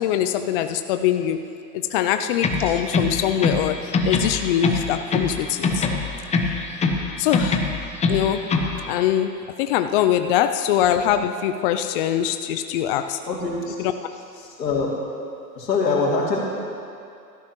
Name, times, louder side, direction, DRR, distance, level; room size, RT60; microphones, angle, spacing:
voice 1, 0.0-1.4 1.7-5.9 7.2-7.6 8.1-8.5 8.9-13.2, left 10 dB, 35° left, 8 dB, 0.4 m, -23 dB
sound 1, 2.4-3.7 3.9-5.4 5.6-7.1 7.3-8.8, left 4 dB, 15° left, 0.8 m, -22 dB
voice 2, 13.3-13.8 14.1-14.9 15.5-16.4, left 4 dB, 85° left, -3 dB, 3.0 m, -24 dB
17.0 x 13.5 x 3.1 m, 2.5 s
hypercardioid pair, 115°, 49 cm